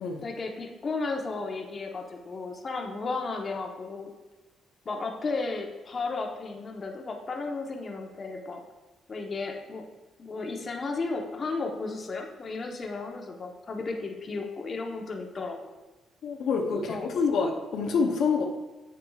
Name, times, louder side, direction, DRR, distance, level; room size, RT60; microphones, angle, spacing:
voice 1, 0.2-4.1 4.8-8.6 9.1-9.8 10.2-15.6 16.7-17.1, left 3 dB, 40° left, 2 dB, 1.0 m, -34 dB
voice 2, 16.2-18.4, left 5 dB, 75° left, 1 dB, 0.8 m, -27 dB
7.5 x 7.2 x 2.4 m, 1.2 s
cardioid pair, 90°, 0 cm